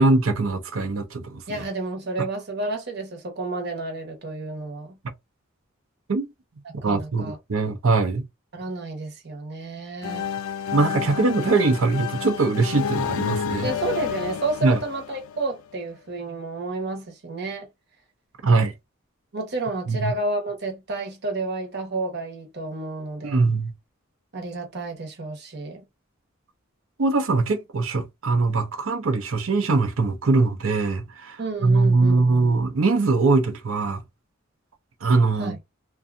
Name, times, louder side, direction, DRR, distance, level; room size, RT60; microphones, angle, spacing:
voice 1, 0.0-1.6 6.1-6.3 6.8-8.2 10.7-13.7 14.6-14.8 18.4-18.7 19.9-20.1 23.2-23.7 27.0-34.0 35.0-35.6, right 3 dB, 85° right, 0.7 m, -22 dB
voice 2, 1.5-5.0 6.8-7.4 8.5-10.3 11.0-11.2 13.6-17.7 19.3-23.4 24.3-25.8 31.4-32.5 35.4-35.6, right 2 dB, 55° right, 1.0 m, -31 dB
sound 1, 10.0-15.8, left 8 dB, 80° left, 0.4 m, -30 dB
2.6 x 2.3 x 2.4 m
head